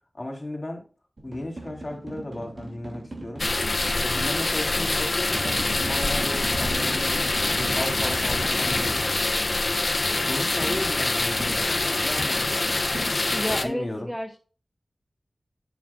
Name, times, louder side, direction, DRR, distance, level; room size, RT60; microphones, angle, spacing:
voice 1, 0.1-0.9 1.2-3.5 4.0-7.3 7.5-9.0 10.0-12.7 13.6-14.1, left 1 dB, 35° left, 1 dB, 3.5 m, -35 dB
sound 1, 1.2-4.1 5.3-9.1 10.6-13.6, right 1 dB, 60° right, 2.7 m, -37 dB
sound 2, 3.4-13.6, left 2 dB, 50° left, 1.1 m, -25 dB
voice 2, 13.3-14.4, equal, 5° left, 3 dB, 1.0 m, -30 dB
8.9 x 7.5 x 2.4 m, 0.37 s
wide cardioid pair, 65°, 0 cm